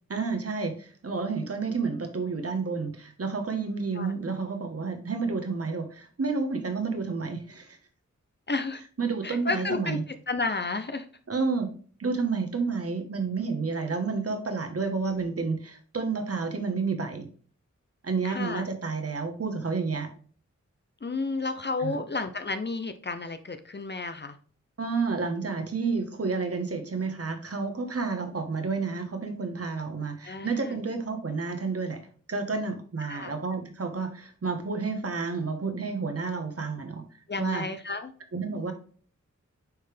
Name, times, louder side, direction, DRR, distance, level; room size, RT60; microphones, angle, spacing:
voice 1, 0.1-7.8 9.0-10.0 11.3-17.3 18.0-20.1 21.8-22.0 24.8-32.0 32.3-37.0 37.4-37.6 38.3-38.7, right 4 dB, 50° right, 6 dB, 1.5 m, -30 dB
voice 2, 8.5-8.8 9.2-10.0 10.3-11.1 18.2-18.6 21.0-24.4 30.2-30.8 33.0-33.3 37.3-38.1, left 3 dB, 35° left, 9 dB, 0.8 m, -32 dB
9.6 x 3.3 x 3.3 m, 0.44 s
cardioid pair, 55°, 30 cm